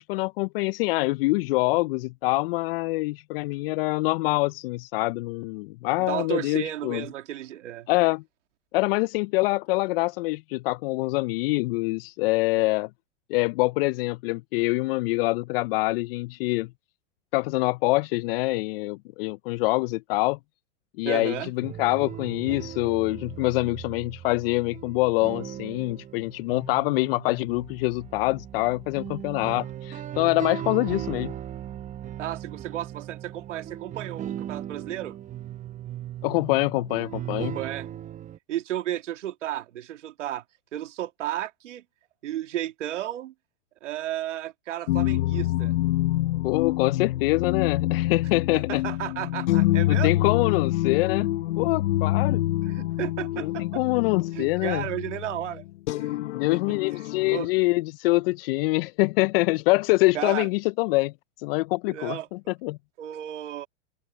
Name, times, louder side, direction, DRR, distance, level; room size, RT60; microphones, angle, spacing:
voice 1, 0.0-7.0 7.9-8.2 8.7-12.9 13.3-16.7 17.3-20.4 21.0-31.3 36.2-37.6 46.4-48.8 49.9-51.3 51.6-52.4 53.4-54.9 56.3-62.8, left 23 dB, 55° left, 0.5 m, -25 dB
voice 2, 6.0-7.9 21.0-21.5 32.2-35.1 37.4-37.9 38.5-40.4 40.7-41.8 42.2-43.3 43.8-45.7 48.5-50.1 52.6-53.8 54.3-55.6 56.0-56.2 56.7-56.8 57.3-57.5 60.1-60.5 61.9-62.3 63.0-63.7, right 12 dB, 80° right, 2.6 m, -33 dB
sound 1, 21.6-38.4, right 11 dB, 20° right, 0.8 m, -38 dB
sound 2, 44.9-57.4, left 15 dB, 70° left, 1.0 m, -26 dB
open air
hypercardioid pair, 120°, 36 cm